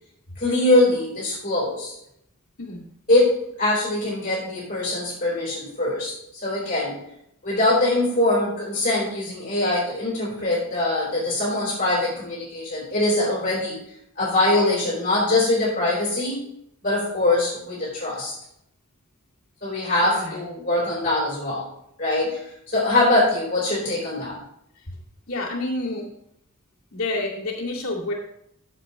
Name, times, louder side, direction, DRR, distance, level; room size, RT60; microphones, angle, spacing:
voice 1, 0.4-2.0 3.1-6.1 6.4-7.0 7.4-13.8 14.2-16.4 16.8-18.3 19.6-21.6 22.0-22.3 22.7-24.4, left 2 dB, 40° left, -6 dB, 4.1 m, -22 dB
voice 2, 20.0-20.4 25.3-26.1 26.9-28.1, left 2 dB, 70° left, -7 dB, 2.3 m, -29 dB
14.0 x 7.5 x 3.2 m, 0.76 s
head